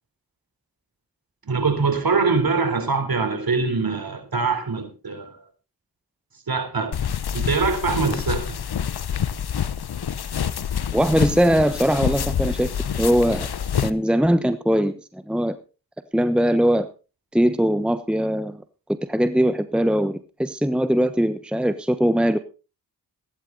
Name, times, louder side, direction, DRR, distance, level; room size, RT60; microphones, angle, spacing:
voice 1, 1.5-5.4 6.5-6.9 7.3-8.6, right 4 dB, 55° right, 3.9 m, -23 dB
sound 1, 6.9-13.9, left 8 dB, 60° left, 1.0 m, -27 dB
voice 2, 10.9-12.7 13.0-13.5 13.8-15.6 16.1-16.9 17.3-18.6 19.1-22.4, equal, ahead, 1.1 m, -21 dB
15.0 x 11.5 x 4.0 m
cardioid pair, 45°, 44 cm